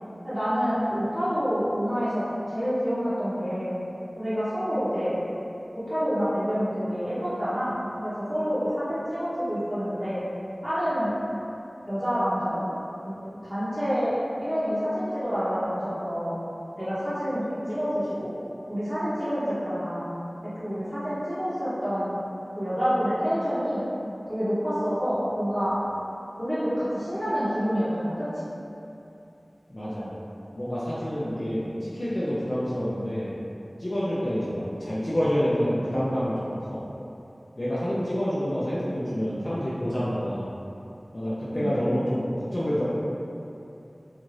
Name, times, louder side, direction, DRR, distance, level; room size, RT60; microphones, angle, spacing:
voice 1, 0.2-3.7 4.2-5.2 5.7-7.8 8.0-10.2 10.6-11.1 11.8-12.6 13.0-16.4 16.8-18.3 18.7-20.1 20.4-22.1 22.5-23.8 24.3-25.8 26.4-28.3 41.5-41.7, equal, 5° right, -16 dB, 0.8 m, -27 dB
voice 2, 29.7-30.1 30.6-33.3 33.8-36.8 37.6-40.5 41.1-42.9, equal, 45° left, -10 dB, 0.5 m, -28 dB
2.5 x 2.4 x 3.1 m, 2.8 s
wide cardioid pair, 50°, 0 cm